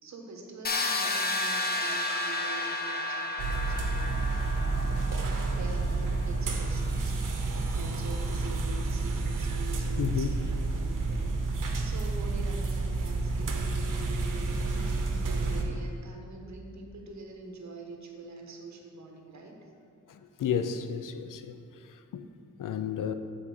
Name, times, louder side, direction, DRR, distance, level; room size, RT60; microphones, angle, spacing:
voice 1, 0.0-4.8 5.5-19.7, right 3 dB, 60° right, 1 dB, 1.2 m, -45 dB
sound 1, 0.6-6.4, left 2 dB, 30° left, 0.6 m, -32 dB
sound 2, 3.4-15.6, right 3 dB, 80° right, 0.9 m, -30 dB
voice 2, 10.0-10.4 20.1-21.6 21.8-22.3 22.6-23.1, left 7 dB, 80° left, 9 dB, 0.5 m, -32 dB
7.5 x 4.3 x 6.4 m, 2.4 s
wide cardioid pair, 125°, 31 cm